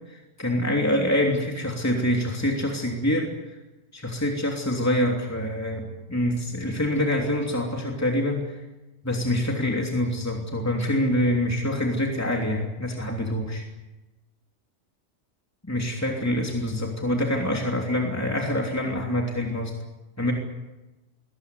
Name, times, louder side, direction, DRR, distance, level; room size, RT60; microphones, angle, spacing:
voice 1, 0.1-3.6 3.9-8.6 9.0-13.6 15.6-19.7 20.2-20.3, left 1 dB, 15° left, 1 dB, 3.1 m, -25 dB
22.0 x 19.5 x 9.7 m, 1.0 s
omnidirectional pair, 1.2 m